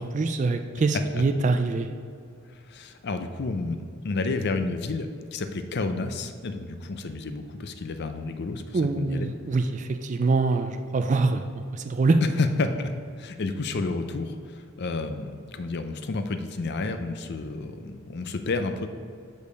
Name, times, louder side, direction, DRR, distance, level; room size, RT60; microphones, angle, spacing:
voice 1, 0.0-1.9 8.7-11.4 11.7-12.2, right 3 dB, 35° right, 8 dB, 0.3 m, -24 dB
voice 2, 2.7-9.3 12.4-12.9 13.2-18.9, left 3 dB, 50° left, 8 dB, 0.5 m, -30 dB
6.5 x 5.3 x 5.2 m, 2.3 s
head